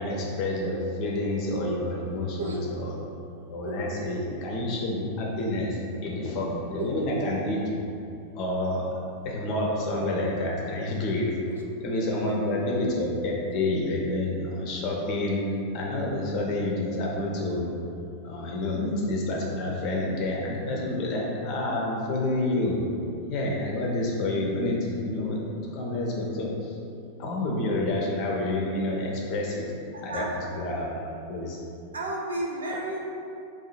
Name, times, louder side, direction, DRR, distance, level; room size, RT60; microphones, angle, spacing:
voice 1, 0.0-2.9 3.5-7.9 8.3-8.9 9.2-11.3 11.8-15.4 15.7-17.8 18.2-22.8 23.3-26.8 27.2-29.7 30.0-31.0 31.3-31.6, left 1 dB, 40° left, -2 dB, 0.7 m, -28 dB
voice 2, 12.3-12.6 29.9-30.4 31.9-33.0, right 2 dB, 70° right, -2 dB, 0.5 m, -33 dB
2.8 x 2.6 x 4.0 m, 2.6 s
figure-of-eight pair, 90°, 0 cm